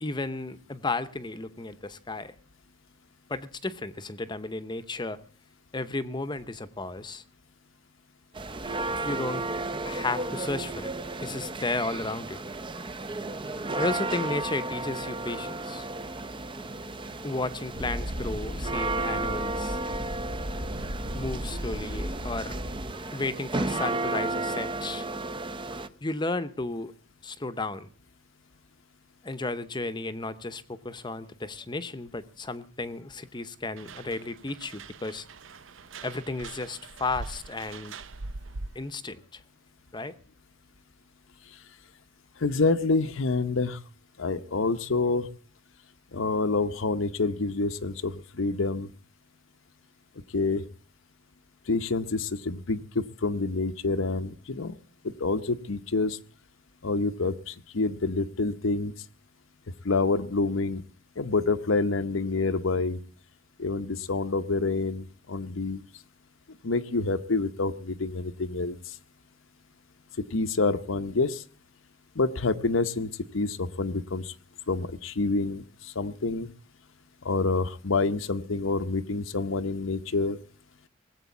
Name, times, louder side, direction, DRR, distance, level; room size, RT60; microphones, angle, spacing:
voice 1, 0.0-2.3 3.3-5.2 5.7-7.2 9.0-9.5 9.8-10.9 11.2-12.4 13.8-15.8 17.2-19.8 21.1-22.5 23.1-25.1 26.0-26.9 27.2-27.9 29.2-35.3 36.0-37.9 38.7-39.4 39.9-40.1, left 2 dB, 20° left, 12 dB, 0.8 m, -33 dB
sound 1, 8.3-25.9, right 2 dB, 25° right, 0.6 m, -33 dB
sound 2, 17.7-22.9, equal, 50° right, 1.2 m, -35 dB
sound 3, 33.8-39.0, right 3 dB, 70° right, 0.6 m, -42 dB
voice 2, 42.4-43.8 44.2-45.3 46.1-48.9 50.3-50.6 51.7-54.7 55.0-56.2 56.8-58.9 59.8-60.8 61.2-63.0 63.6-65.8 66.6-69.0 70.3-71.4 72.2-74.3 74.7-76.5 77.2-80.4, left 3 dB, 75° left, 9 dB, 0.8 m, -27 dB
19.0 x 8.2 x 8.2 m, 0.43 s
head